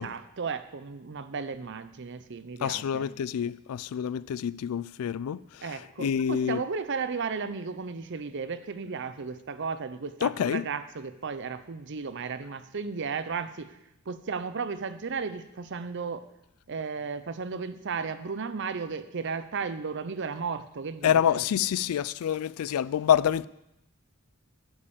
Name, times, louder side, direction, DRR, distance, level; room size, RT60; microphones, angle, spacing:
voice 1, 0.0-3.1 5.6-13.8 14.1-16.3 16.7-21.4, right 5 dB, 55° right, 0.6 m, -34 dB
voice 2, 2.6-5.4 6.0-6.6 10.2-10.6 21.0-23.5, left 9 dB, 75° left, 0.3 m, -27 dB
11.0 x 5.3 x 7.1 m
head